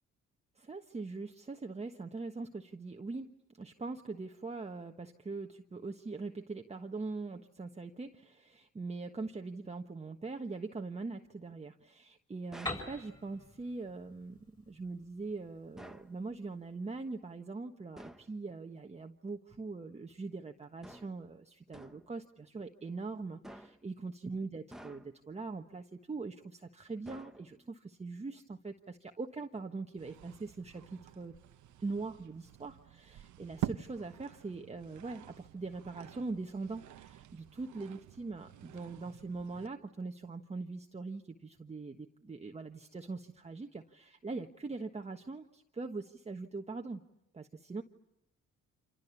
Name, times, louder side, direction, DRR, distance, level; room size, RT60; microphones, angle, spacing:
voice 1, 0.6-31.4 31.8-47.0 47.3-47.8, right 3 dB, 20° right, 3 dB, 1.3 m, -42 dB
sound 1, 12.5-12.9 15.8-16.2 17.9-18.3 20.8-21.2 21.7-22.1 23.4-23.9 24.7-25.3 27.0-27.7, right 1 dB, ahead, 1.2 m, -51 dB
Piano, 12.7-16.3, left 2 dB, 15° left, 6.6 m, -44 dB
sound 2, 30.0-39.7, right 11 dB, 75° right, 1.1 m, -47 dB
30.0 x 27.0 x 7.1 m, 0.82 s
cardioid pair, 90°, 30 cm